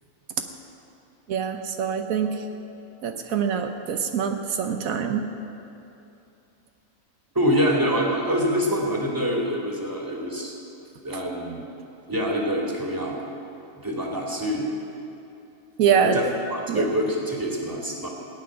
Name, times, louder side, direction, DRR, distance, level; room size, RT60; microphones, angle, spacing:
voice 1, 1.3-2.4 3.0-5.3 15.8-16.2 16.7-16.9, right 7 dB, 85° right, 6 dB, 1.2 m, -24 dB
voice 2, 7.3-10.5 11.0-11.6 12.1-13.2 13.8-14.7 16.0-18.1, equal, 15° right, -2 dB, 2.2 m, -25 dB
17.5 x 6.3 x 9.5 m, 2.7 s
omnidirectional pair, 1.4 m